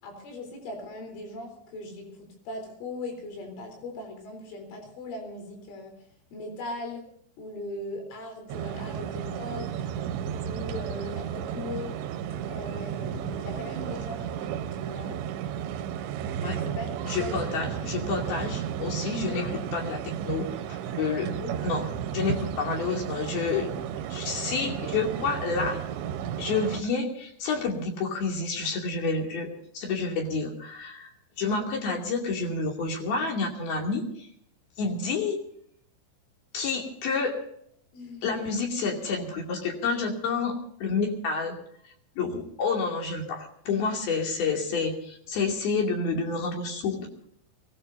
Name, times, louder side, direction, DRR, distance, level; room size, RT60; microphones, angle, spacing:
voice 1, 0.0-5.9 6.3-7.0 7.4-9.9 10.5-12.0 12.5-15.2 16.4-16.9 17.2-17.3 19.2-19.5 21.2-21.6 37.9-38.3, left 2 dB, 80° left, 3 dB, 6.3 m, -39 dB
sound 1, 8.5-26.8, right 9 dB, 80° right, 3.0 m, -33 dB
voice 2, 17.0-21.3 21.6-21.8 22.1-23.7 24.1-25.8 26.4-29.5 29.7-31.1 31.4-34.3 34.8-35.4 36.5-37.4 38.2-40.5 40.8-41.6 42.2-47.1, left 4 dB, 55° left, 1 dB, 4.2 m, -29 dB
23.5 x 18.5 x 2.7 m, 0.68 s
omnidirectional pair, 5.5 m